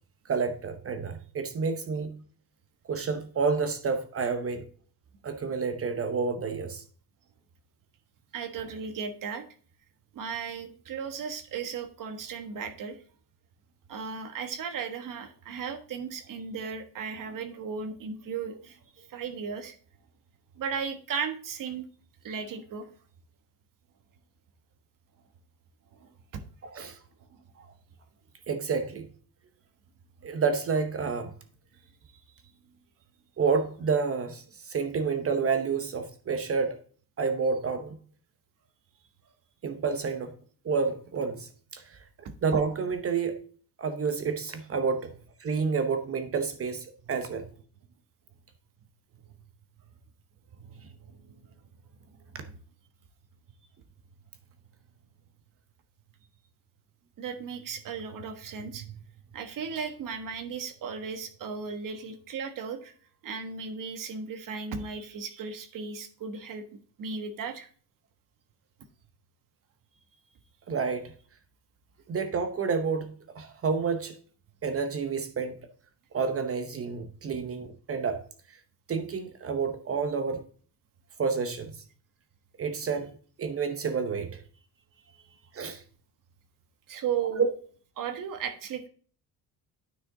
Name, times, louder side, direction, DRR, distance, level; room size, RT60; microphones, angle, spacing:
voice 1, 0.3-2.1 2.9-4.6 5.2-6.8 26.6-27.0 27.6-27.7 28.5-29.1 30.2-31.3 33.4-36.8 37.2-38.0 39.6-40.3 40.6-42.0 42.4-43.4 43.8-45.1 45.4-47.4 70.7-71.1 72.1-74.1 74.6-75.6 76.1-78.2 78.9-80.4 81.2-81.7 82.6-83.1 83.4-84.4 85.5-85.8 87.4-87.5, right 5 dB, 35° right, 0.9 m, -29 dB
voice 2, 8.3-9.4 10.1-13.0 13.9-18.8 19.1-19.7 20.6-21.8 22.2-22.9 26.0-26.4 42.2-42.3 50.6-51.3 52.4-52.5 57.2-58.9 59.3-62.9 63.2-67.7 86.9-87.5 88.0-88.9, right 6 dB, 55° right, 1.4 m, -36 dB
9.5 x 6.2 x 3.9 m
cardioid pair, 155°, 39 cm